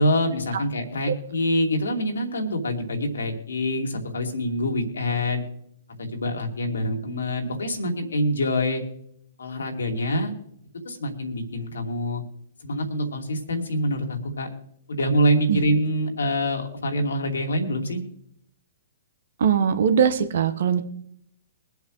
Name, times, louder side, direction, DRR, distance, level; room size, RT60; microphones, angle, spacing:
voice 1, 0.0-5.4 6.0-8.8 9.4-10.3 10.8-12.2 12.6-14.5 14.9-18.0, equal, 80° left, 3 dB, 2.7 m, -25 dB
voice 2, 19.4-20.8, right 7 dB, 65° right, 8 dB, 1.4 m, -21 dB
23.0 x 8.2 x 3.3 m, 0.73 s
hypercardioid pair, 125°, 0 cm